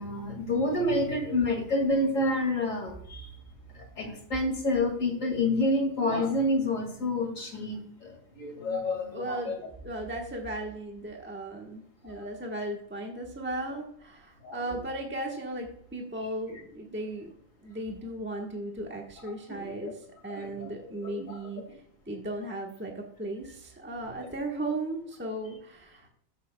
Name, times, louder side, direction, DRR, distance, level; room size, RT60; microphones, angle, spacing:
voice 1, 0.0-3.3 3.8-9.5 12.2-12.3 14.4-14.8 19.5-19.9 20.3-20.7 21.0-21.4 24.2-24.3, left 1 dB, 65° left, 3 dB, 2.5 m, -29 dB
voice 2, 9.1-17.3 17.6-21.6 22.1-26.1, right 1 dB, 10° right, 0 dB, 1.1 m, -36 dB
13.5 x 7.1 x 2.2 m, 0.64 s
omnidirectional pair, 1.4 m